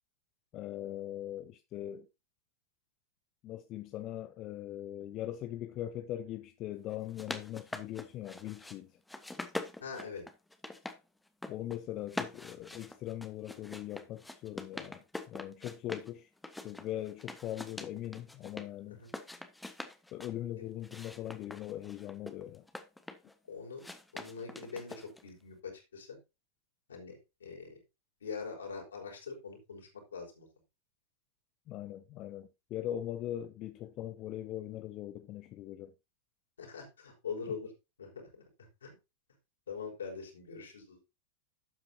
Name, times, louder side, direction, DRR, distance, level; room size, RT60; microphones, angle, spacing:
voice 1, 0.5-2.1 3.4-8.9 11.5-16.3 16.6-19.0 20.1-22.6 31.7-35.9, left 12 dB, 35° left, 0.7 m, -41 dB
sound 1, 6.9-8.8 9.1-11.0 11.3-11.8 12.1-16.1 16.4-18.7 19.0-20.3 20.8-23.3 23.8-25.3, left 2 dB, 5° left, 1.2 m, -44 dB
voice 2, 9.8-10.2 18.9-19.1 23.5-23.8 24.1-26.2 26.9-27.8 28.2-30.5 36.6-37.7 38.0-38.4 38.8-38.9 39.7-41.0, left 5 dB, 70° left, 5.2 m, -43 dB
12.0 x 8.6 x 2.8 m
figure-of-eight pair, 90°, 0 cm